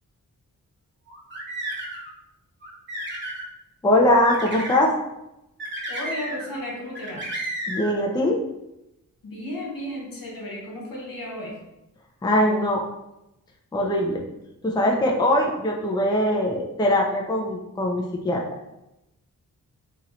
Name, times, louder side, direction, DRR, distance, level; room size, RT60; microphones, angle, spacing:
sound 1, 1.1-2.1 2.6-3.5 4.2-4.8 5.6-6.6 6.9-7.9, right 1 dB, 30° right, 1.0 m, -32 dB
voice 1, 3.8-4.9 7.7-8.4 12.2-12.8 13.7-14.2 14.6-18.4, left 1 dB, 10° left, 0 dB, 0.5 m, -21 dB
voice 2, 5.9-7.3 9.2-11.6, left 1 dB, 70° left, -2 dB, 1.0 m, -34 dB
3.0 x 2.8 x 2.5 m, 0.91 s
cardioid pair, 65°, 35 cm